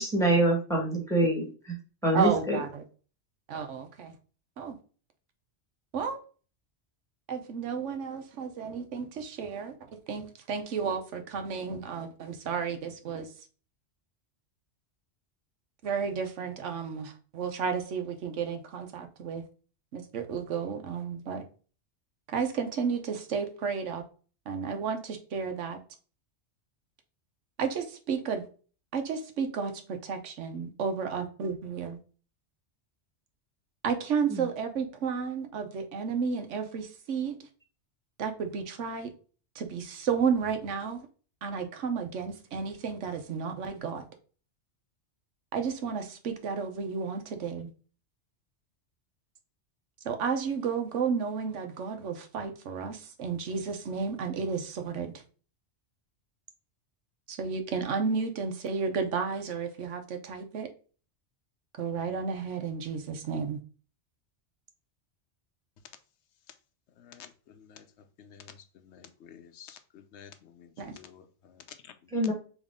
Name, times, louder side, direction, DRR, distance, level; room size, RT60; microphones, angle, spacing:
voice 1, 0.0-1.8 2.0-2.6 34.3-34.4 72.1-72.3, right 1 dB, 5° left, -2 dB, 1.5 m, -25 dB
voice 2, 2.1-2.8 3.5-4.2 4.6-4.8 5.9-6.2 7.3-13.5 15.8-19.4 19.9-21.5 22.3-24.0 24.5-25.8 27.6-28.5 28.9-32.0 33.8-37.5 38.2-39.1 39.5-41.1 41.4-44.1 45.5-47.7 50.0-55.2 57.3-60.7 61.8-63.6 70.8-71.0, right 6 dB, 90° right, 6 dB, 1.1 m, -32 dB
voice 3, 67.0-67.9 68.2-72.3, left 8 dB, 75° left, 8 dB, 0.9 m, -51 dB
3.6 x 3.1 x 3.6 m, 0.38 s
omnidirectional pair, 1.2 m